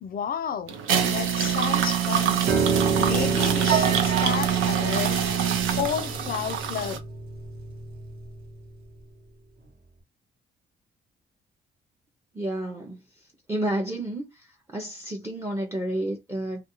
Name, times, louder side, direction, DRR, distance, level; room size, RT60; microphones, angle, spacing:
voice 1, 0.0-0.8 1.0-2.5 3.0-5.2 5.8-7.0, left 8 dB, 45° left, 0.4 m, -31 dB
sound 1, 0.7-7.0, right 9 dB, 85° right, 0.6 m, -25 dB
Piano, 2.5-8.7, right 4 dB, 55° right, 0.8 m, -29 dB
voice 2, 12.3-16.6, right 1 dB, 15° right, 0.5 m, -31 dB
2.3 x 2.2 x 2.9 m
cardioid pair, 90°, 20 cm